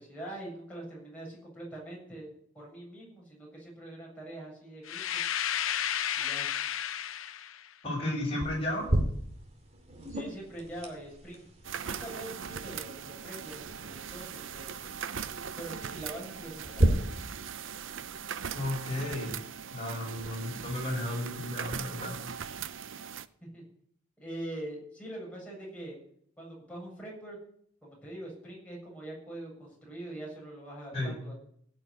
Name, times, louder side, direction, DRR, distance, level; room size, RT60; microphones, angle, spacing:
voice 1, 0.0-2.3 2.5-5.0 6.1-6.5 10.1-11.5 11.8-14.8 15.6-17.1 23.4-23.6 24.2-26.0 26.4-27.4 27.8-31.3, right 1 dB, 5° left, -4 dB, 7.5 m, -43 dB
sound 1, 4.9-7.6, left 10 dB, 80° left, 0.7 m, -32 dB
voice 2, 7.8-8.9 18.5-19.4 19.7-22.2 30.9-31.1, left 1 dB, 30° left, -1 dB, 6.1 m, -33 dB
sound 2, 8.4-16.8, right 1 dB, 30° right, 2.5 m, -35 dB
sound 3, 11.6-23.3, right 7 dB, 70° right, 0.6 m, -40 dB
17.0 x 6.5 x 9.6 m, 0.66 s
head